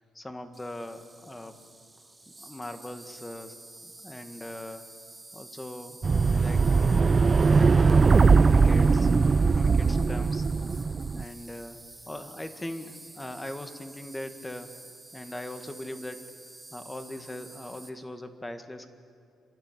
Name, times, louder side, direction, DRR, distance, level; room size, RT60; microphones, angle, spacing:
voice 1, 0.1-1.6 2.4-3.6 3.8-4.9 5.3-6.0 6.3-8.1 8.4-9.2 9.5-11.8 12.1-14.7 15.1-16.2 16.7-18.9, left 1 dB, 15° left, 8 dB, 1.8 m, -40 dB
Insect, 0.5-17.9, right 2 dB, 15° right, 1.9 m, -49 dB
sound 1, 6.0-11.2, right 4 dB, 35° right, 0.4 m, -20 dB
28.5 x 12.0 x 9.2 m, 2.5 s
cardioid pair, 90°, 0 cm